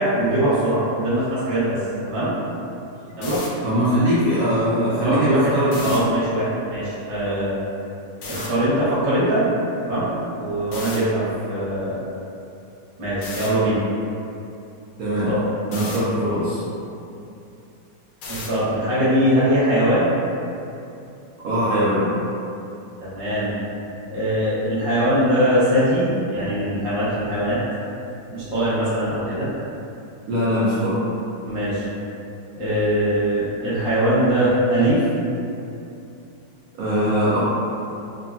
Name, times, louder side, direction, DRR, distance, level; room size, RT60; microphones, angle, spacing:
voice 1, 0.0-1.8 2.0-2.3 3.1-3.4 4.9-5.5 5.8-7.5 8.3-9.4 9.8-10.1 10.4-12.0 13.0-13.8 15.3-15.4 18.3-20.1 23.0-23.5 24.1-27.6 28.3-29.5 31.5-31.8 32.5-35.0, equal, 40° right, -12 dB, 0.4 m, -21 dB
sound 1, 3.1-3.5 5.6-6.0 8.2-8.5 10.7-11.0 13.2-13.5 15.7-16.0 18.2-18.6, left 3 dB, 90° left, 1.3 m, -33 dB
voice 2, 3.6-5.9 15.0-15.3 15.7-16.6 21.4-22.1 30.3-31.0 36.8-37.4, equal, 70° right, -9 dB, 0.9 m, -21 dB
3.4 x 2.0 x 2.4 m, 2.7 s
omnidirectional pair, 1.9 m